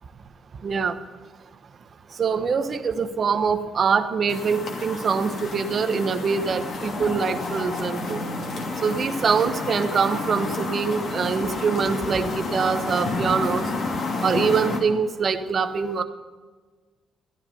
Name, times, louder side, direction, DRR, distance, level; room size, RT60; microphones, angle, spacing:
voice 1, 0.6-1.0 2.2-8.2 8.8-13.6 14.2-16.0, right 5 dB, 50° right, 8 dB, 1.1 m, -24 dB
sound 1, 4.3-14.8, left 3 dB, 60° left, 2.7 m, -30 dB
14.0 x 10.5 x 5.4 m, 1.4 s
cardioid pair, 90°, 0 cm